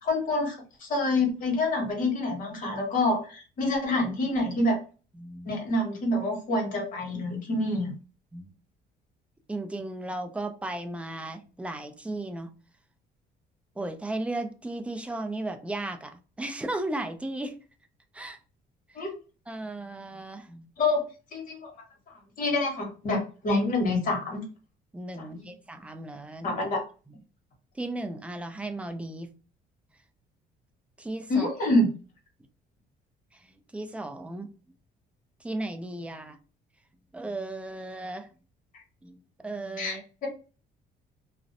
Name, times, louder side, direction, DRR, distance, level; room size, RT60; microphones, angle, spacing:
voice 1, 0.0-4.8 5.5-7.9 19.0-19.1 20.8-21.0 21.3-21.6 22.4-24.4 25.4-25.5 26.4-26.8 31.3-31.9 39.8-40.3, left 2 dB, 55° left, 0 dB, 1.2 m, -27 dB
voice 2, 5.1-5.5 8.3-8.5 9.5-12.5 13.8-17.5 18.1-18.4 19.0-19.1 19.5-20.7 24.9-26.5 27.1-27.2 27.8-29.3 31.0-31.5 33.3-33.5 33.7-34.5 35.4-36.4 37.1-38.3 39.0-40.0, right 2 dB, 5° right, 7 dB, 0.3 m, -35 dB
2.5 x 2.0 x 2.6 m, 0.35 s
cardioid pair, 110°, 17 cm